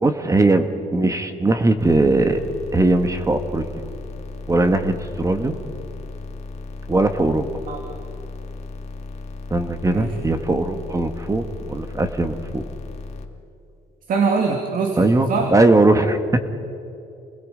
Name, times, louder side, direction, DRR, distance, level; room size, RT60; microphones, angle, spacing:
voice 1, 0.0-2.4 2.7-3.6 4.5-5.5 6.9-7.5 9.5-12.6 15.0-16.4, right 2 dB, 20° right, 8 dB, 1.4 m, -19 dB
sound 1, 1.8-13.2, left 3 dB, 40° left, 2.2 m, -35 dB
voice 2, 14.1-15.6, right 4 dB, 55° right, 3 dB, 2.4 m, -23 dB
28.5 x 21.0 x 5.1 m, 2.6 s
cardioid pair, 110°, 17 cm